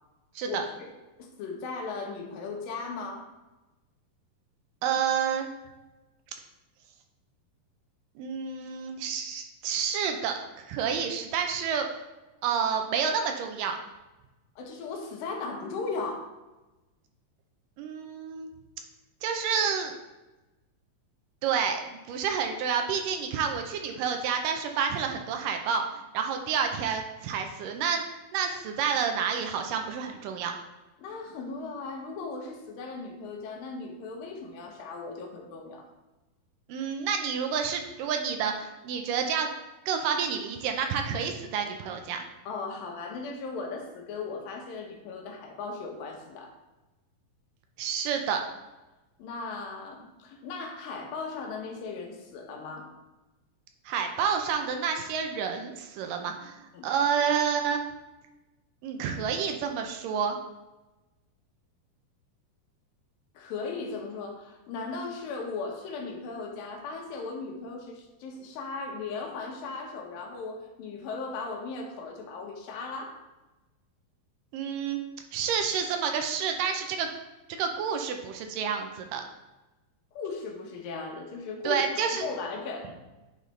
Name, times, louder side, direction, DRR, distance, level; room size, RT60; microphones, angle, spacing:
voice 1, 1.2-3.3 14.6-16.3 31.0-35.9 42.5-46.5 49.2-52.9 56.1-56.2 56.7-56.9 63.3-73.2 80.1-82.9, left 4 dB, 80° left, 1 dB, 2.7 m, -37 dB
voice 2, 4.8-5.5 8.2-11.9 12.4-13.8 17.8-18.5 19.2-19.9 21.4-30.5 36.7-39.5 39.9-42.3 47.8-48.4 53.9-57.9 58.8-60.4 74.5-75.0 75.3-77.1 77.6-79.2 81.6-82.3, right 7 dB, 80° right, 5 dB, 2.1 m, -29 dB
9.0 x 4.0 x 3.2 m, 1.0 s
omnidirectional pair, 4.1 m